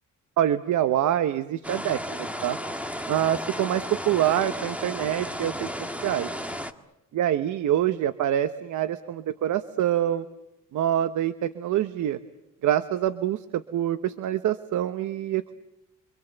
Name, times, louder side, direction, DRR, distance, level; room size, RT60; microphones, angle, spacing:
voice 1, 0.4-2.6 3.1-5.7 6.0-6.3 7.1-10.2 10.7-12.2 12.6-15.5, right 11 dB, 75° right, 11 dB, 1.1 m, -25 dB
sound 1, 1.6-6.7, equal, 5° right, 1.9 m, -34 dB
29.5 x 25.0 x 8.1 m, 0.89 s
cardioid pair, 90°, 30 cm